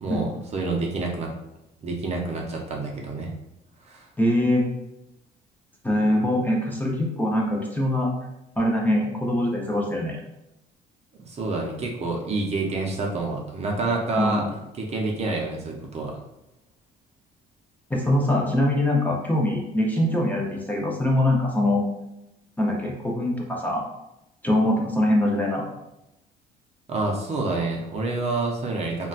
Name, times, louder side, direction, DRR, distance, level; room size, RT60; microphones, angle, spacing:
voice 1, 0.0-1.3 1.8-3.3 3.8-4.1 11.1-14.4 14.7-16.2 26.9-29.1, right 3 dB, 40° right, 0 dB, 0.6 m, -28 dB
voice 2, 4.2-4.7 5.8-8.1 8.6-10.2 14.2-14.4 17.9-21.8 22.6-23.8 24.4-25.7, left 1 dB, 10° left, -2 dB, 0.6 m, -23 dB
3.8 x 2.2 x 2.3 m, 0.89 s
cardioid pair, 110°, 17 cm